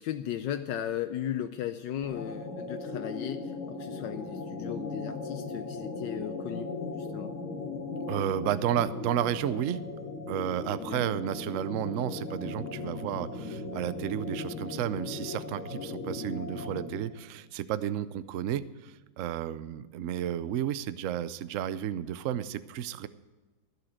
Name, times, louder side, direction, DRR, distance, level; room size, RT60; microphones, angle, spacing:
voice 1, 0.0-6.7 7.0-7.3 10.9-11.0, left 10 dB, 75° left, 9 dB, 1.3 m, -36 dB
sound 1, 2.0-17.2, left 3 dB, 45° left, 2.0 m, -38 dB
voice 2, 8.1-9.8 10.3-23.1, right 11 dB, 70° right, 15 dB, 0.7 m, -32 dB
13.5 x 8.0 x 6.4 m, 1.3 s
omnidirectional pair, 2.0 m